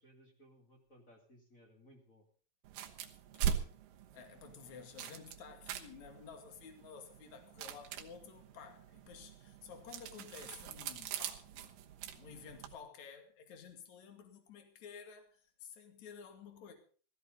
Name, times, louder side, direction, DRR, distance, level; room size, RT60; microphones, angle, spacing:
voice 1, 0.0-2.2, equal, 25° left, 1.9 m, -62 dB
sound 1, 2.6-12.8, right 9 dB, 70° right, 2.2 m, -42 dB
voice 2, 4.1-11.7 12.1-16.7, left 6 dB, 45° left, 3.0 m, -53 dB
16.0 x 15.5 x 4.0 m
omnidirectional pair, 5.4 m